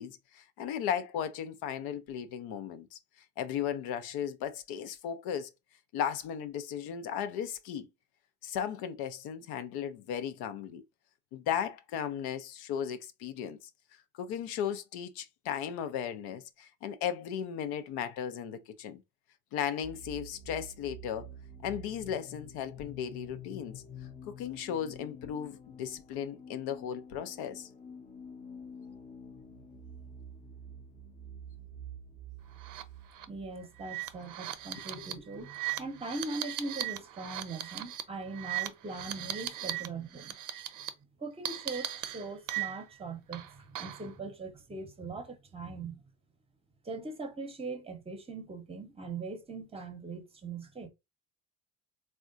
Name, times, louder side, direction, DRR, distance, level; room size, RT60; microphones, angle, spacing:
voice 1, 0.0-3.0 3.4-5.5 5.9-7.9 8.4-10.8 11.3-13.7 14.2-19.0 19.5-21.3 21.6-23.8 24.3-27.7 35.0-35.1, left 8 dB, 80° left, 0.6 m, -36 dB
sound 1, 19.8-35.4, equal, 20° left, 0.6 m, -48 dB
sound 2, 32.6-32.8 33.1-33.3 33.8-39.9 40.1-40.9 41.5-43.0 43.3-44.1, right 12 dB, 55° right, 0.5 m, -38 dB
voice 2, 33.3-40.3 41.2-46.0 46.8-50.9, right 3 dB, 15° right, 0.7 m, -41 dB
3.5 x 2.2 x 2.5 m
supercardioid pair, 90°, 38 cm